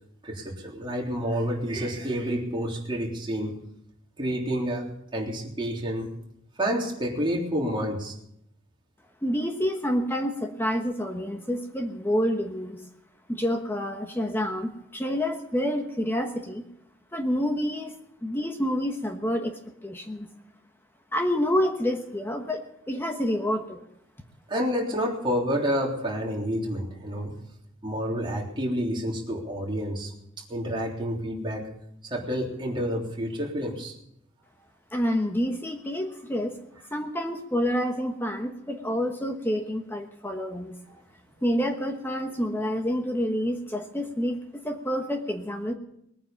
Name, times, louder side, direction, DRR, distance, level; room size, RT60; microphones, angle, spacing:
voice 1, 0.2-3.5 4.2-6.1 6.6-8.1 24.5-27.3 27.8-30.1 30.5-31.7 32.0-33.9, equal, 25° right, -2 dB, 3.6 m, -29 dB
voice 2, 9.2-12.8 13.3-16.7 17.1-17.9 18.2-19.5 19.8-20.3 21.1-23.8 34.9-36.6 36.9-40.8 41.4-45.7, equal, 10° left, 4 dB, 1.2 m, -28 dB
20.0 x 9.7 x 7.2 m, 0.76 s
head